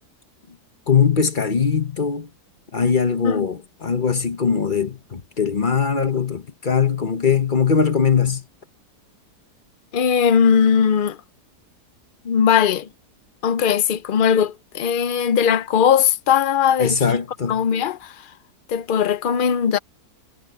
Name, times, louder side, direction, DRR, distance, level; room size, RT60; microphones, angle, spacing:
voice 1, 0.9-2.3 2.7-8.4 16.8-17.6, left 6 dB, 35° left, 0.9 m, -21 dB
voice 2, 9.9-11.2 12.2-12.9 13.4-17.2 17.5-18.2 18.7-19.8, left 7 dB, 75° left, 0.4 m, -19 dB
omnidirectional pair, 1.8 m